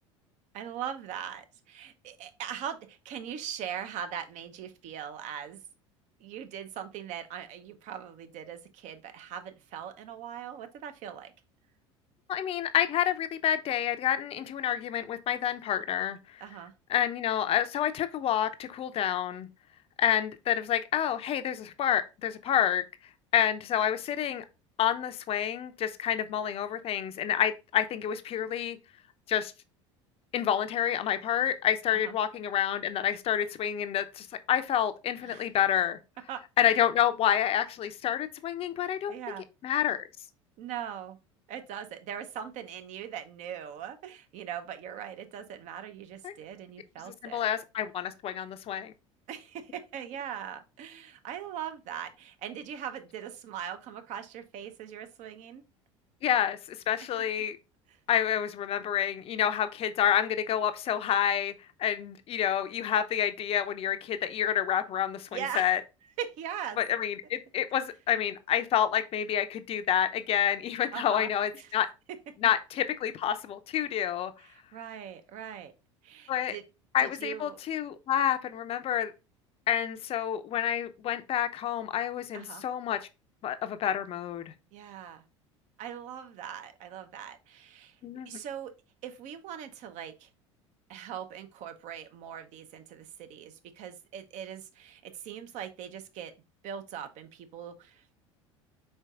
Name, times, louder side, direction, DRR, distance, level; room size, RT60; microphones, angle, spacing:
voice 1, 0.5-5.6 6.2-11.3 16.4-16.7 31.9-32.1 35.2-35.5 36.3-36.8 39.1-39.5 40.6-41.2 41.5-47.4 49.3-55.6 57.9-58.0 65.3-65.7 66.2-66.8 70.9-71.7 74.4-75.7 76.0-76.6 77.0-77.6 82.3-82.6 84.7-85.2 85.8-88.0 88.3-88.7 89.0-90.3 90.9-96.3 96.6-98.1, right 9 dB, 50° right, 0.7 m, -40 dB
voice 2, 12.3-16.4 16.9-19.5 20.0-22.8 23.3-24.4 24.8-28.8 29.3-29.5 30.3-36.0 36.6-39.2 39.6-40.0 46.2-46.3 47.1-48.9 56.2-57.6 58.1-61.5 61.8-65.3 65.6-65.8 66.8-71.9 72.4-74.3 76.3-76.6 76.9-79.1 79.7-83.0 83.4-84.4 88.0-88.4, left 10 dB, 40° left, 0.6 m, -28 dB
4.5 x 4.5 x 2.3 m
hypercardioid pair, 70°, 16 cm